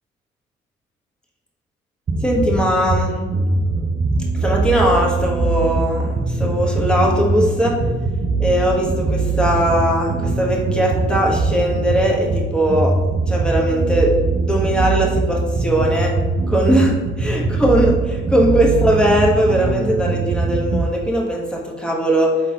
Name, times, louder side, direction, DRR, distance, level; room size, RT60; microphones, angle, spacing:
sound 1, 2.1-20.8, right 3 dB, 35° right, 0.5 m, -21 dB
voice 1, 2.2-3.2 4.3-7.8 8.4-13.0 13.3-16.1 16.5-22.4, equal, 5° left, -2 dB, 1.1 m, -19 dB
4.9 x 3.9 x 2.8 m, 1.4 s
cardioid pair, 90°, 20 cm